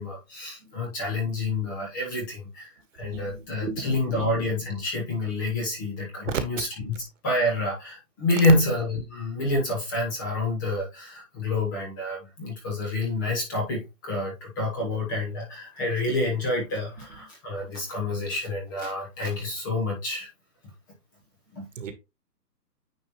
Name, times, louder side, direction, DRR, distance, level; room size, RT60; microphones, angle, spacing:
voice 1, 0.0-2.7 2.9-20.3 21.5-21.7, left 2 dB, 10° left, 0.8 m, -28 dB
voice 2, 3.0-4.2 6.3-6.4 21.8-21.9, right 7 dB, 50° right, 1.5 m, -34 dB
9.3 x 4.5 x 3.0 m
hypercardioid pair, 155°, 50 cm